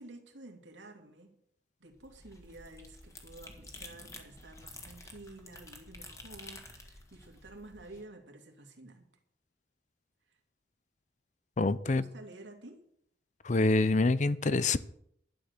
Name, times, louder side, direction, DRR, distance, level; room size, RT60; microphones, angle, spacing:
voice 1, 0.0-1.4 1.8-9.1 10.3-10.4 11.8-12.8, right 2 dB, 85° right, 2.6 m, -51 dB
sound 1, 1.9-8.0, left 2 dB, 15° left, 1.9 m, -50 dB
voice 2, 11.6-12.0 13.4-14.8, left 3 dB, 40° left, 0.6 m, -26 dB
11.5 x 10.5 x 6.7 m
head